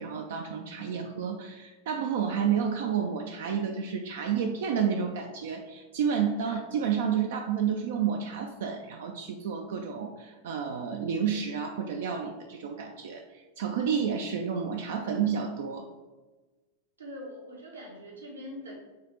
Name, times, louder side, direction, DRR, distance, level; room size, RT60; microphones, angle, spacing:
voice 1, 0.0-15.9, right 7 dB, 55° right, 3 dB, 0.3 m, -30 dB
voice 2, 17.0-18.7, left 1 dB, 75° right, -2 dB, 1.1 m, -42 dB
5.0 x 3.2 x 2.9 m, 1.2 s
figure-of-eight pair, 90°, 0 cm